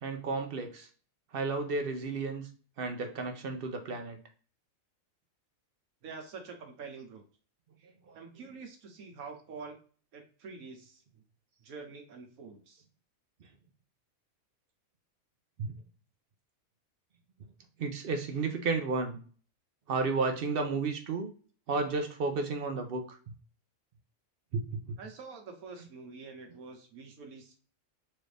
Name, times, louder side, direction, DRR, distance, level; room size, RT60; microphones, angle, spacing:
voice 1, 0.0-0.9 1.3-2.5 2.8-4.2 8.1-8.2 13.4-13.5 15.6-15.7 17.8-19.2 19.9-21.3 21.7-23.2 24.5-25.0, right 4 dB, 55° right, 5 dB, 0.6 m, -32 dB
voice 2, 6.0-7.2 8.1-9.8 10.1-11.2 11.6-12.8 25.0-27.6, right 4 dB, 85° right, 4 dB, 1.4 m, -46 dB
4.2 x 2.5 x 3.2 m, 0.41 s
omnidirectional pair, 1.5 m